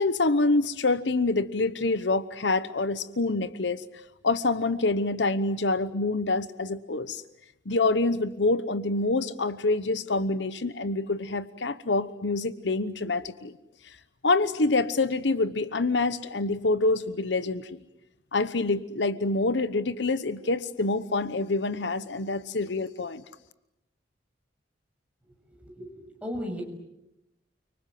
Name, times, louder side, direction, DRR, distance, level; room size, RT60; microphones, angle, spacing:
voice 1, 0.0-3.8 4.2-7.2 7.7-13.6 14.2-17.8 18.3-23.2, left 3 dB, 70° left, 14 dB, 1.0 m, -26 dB
voice 2, 25.3-26.6, equal, 5° right, 1 dB, 6.9 m, -37 dB
30.0 x 25.5 x 7.8 m, 0.87 s
head